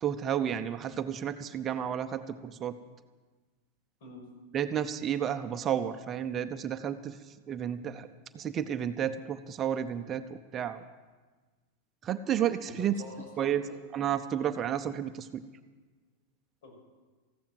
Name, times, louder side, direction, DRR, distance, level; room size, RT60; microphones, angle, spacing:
voice 1, 0.0-2.7 4.5-7.1 7.5-8.1 8.3-10.2 10.5-10.8 12.0-12.9 13.4-13.6 13.9-15.4, right 9 dB, 25° right, 9 dB, 0.6 m, -31 dB
voice 2, 12.6-13.8 16.6-16.8, left 2 dB, 70° left, 1 dB, 6.3 m, -47 dB
15.0 x 12.0 x 7.7 m, 1.3 s
supercardioid pair, 145°, 0 cm